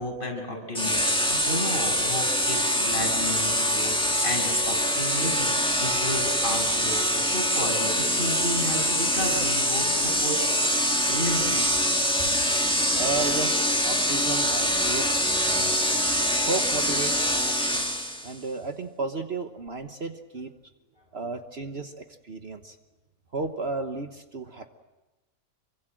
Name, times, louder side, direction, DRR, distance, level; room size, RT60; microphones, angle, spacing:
voice 1, 0.0-11.8, equal, 40° left, 1 dB, 7.3 m, -33 dB
sound 1, 0.7-18.3, equal, 5° left, 1.8 m, -24 dB
voice 2, 12.9-15.7 16.5-17.8 18.2-20.5 21.1-22.7 23.3-24.7, right 3 dB, 50° right, 6 dB, 1.4 m, -33 dB
27.0 x 24.5 x 7.7 m, 1.1 s
omnidirectional pair, 1.4 m